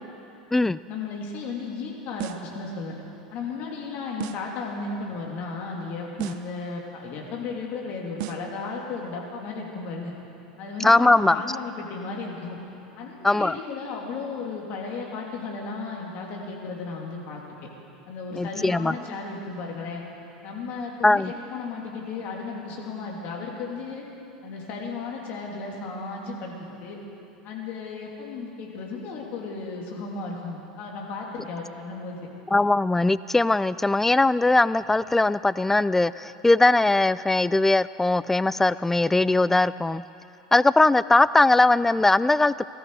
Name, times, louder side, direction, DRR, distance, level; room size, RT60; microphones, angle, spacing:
voice 1, 0.9-2.9 3.3-10.1 10.6-12.6 13.0-17.6 18.1-20.0 20.4-24.0 24.4-27.0 27.4-32.2, left 4 dB, 50° left, -1 dB, 3.0 m, -34 dB
sound 1, 2.2-2.6 4.2-4.6 6.2-6.6 8.2-8.6, right 13 dB, 60° right, 0.7 m, -35 dB
voice 2, 10.8-11.4 13.2-13.6 18.3-19.0 21.0-21.3 32.5-40.0 40.5-42.7, left 2 dB, 10° left, 17 dB, 0.3 m, -20 dB
18.5 x 13.5 x 4.9 m, 2.9 s
hypercardioid pair, 80°, 4 cm